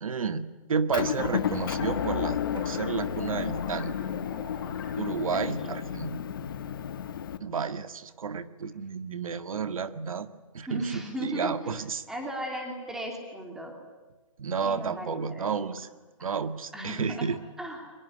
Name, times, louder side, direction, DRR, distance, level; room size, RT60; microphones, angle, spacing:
voice 1, 0.0-4.0 5.0-6.2 7.4-10.3 10.5-12.0 14.4-15.9 16.2-17.4, right 6 dB, 80° right, 11 dB, 1.9 m, -31 dB
Motor vehicle (road) / Engine, 0.9-7.4, left 8 dB, 40° left, 1.4 m, -32 dB
sound 1, 0.9-5.3, left 4 dB, 15° left, 4.9 m, -44 dB
voice 2, 5.3-5.8 10.6-13.7 14.6-15.5 16.2-16.3 16.7-17.3 17.6-17.9, right 1 dB, 5° right, 2 dB, 2.9 m, -36 dB
24.0 x 22.0 x 9.7 m, 1.2 s
hypercardioid pair, 180°, 17 cm